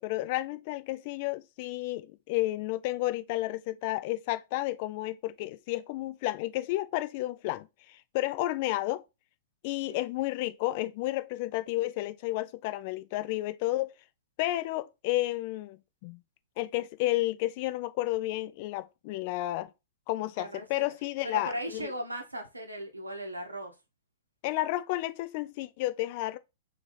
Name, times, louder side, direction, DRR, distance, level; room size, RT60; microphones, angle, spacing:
voice 1, 0.0-9.0 9.6-13.9 14.4-16.2 16.6-19.7 20.1-21.9 24.4-26.4, left 17 dB, 40° left, 0.3 m, -32 dB
voice 2, 20.4-20.8 21.2-23.7, right 1 dB, 85° right, 1.0 m, -37 dB
3.5 x 3.1 x 4.1 m
figure-of-eight pair, 110°, 0 cm